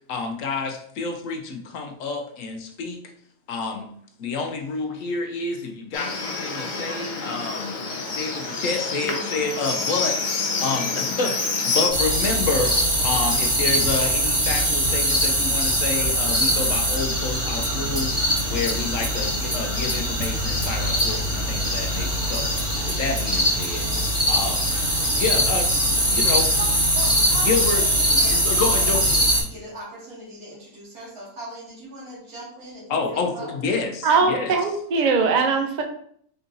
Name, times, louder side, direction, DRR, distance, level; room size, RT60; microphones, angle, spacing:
voice 1, 0.0-3.0 3.5-3.9 4.2-7.8 8.1-10.2 10.6-12.8 13.0-18.2 18.5-22.5 22.9-23.9 24.3-24.7 25.2-26.5 27.4-27.8 28.3-29.2 32.9-34.5, left 4 dB, 65° left, 4 dB, 1.0 m, -28 dB
Livestock farm animals working animals, 5.9-11.9, left 4 dB, 50° left, 0.6 m, -27 dB
voice 2, 9.0-10.1 26.6-33.5, right 1 dB, 80° right, -6 dB, 2.5 m, -39 dB
sound 1, 11.9-29.4, equal, 5° right, 1.3 m, -22 dB
voice 3, 34.0-35.8, right 4 dB, 60° right, 4 dB, 0.4 m, -20 dB
4.6 x 4.0 x 2.6 m, 0.63 s
omnidirectional pair, 1.5 m